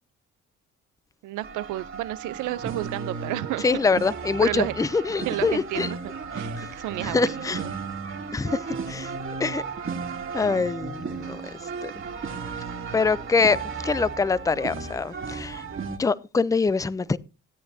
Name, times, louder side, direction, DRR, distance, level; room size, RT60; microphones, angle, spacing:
voice 1, 1.2-3.8 4.4-4.7 5.2-6.0 6.3-7.7, right 16 dB, 90° right, 0.6 m, -31 dB
sound 1, 1.4-16.0, right 5 dB, 45° right, 2.0 m, -34 dB
voice 2, 3.6-5.9 7.0-7.6 8.3-8.6 8.9-9.1 9.4-9.6 10.3-11.4 11.8-11.9 12.9-13.6 13.8-15.6 16.0-17.2, left 4 dB, 10° left, 0.4 m, -24 dB
17.0 x 8.8 x 2.7 m
cardioid pair, 90°, 30 cm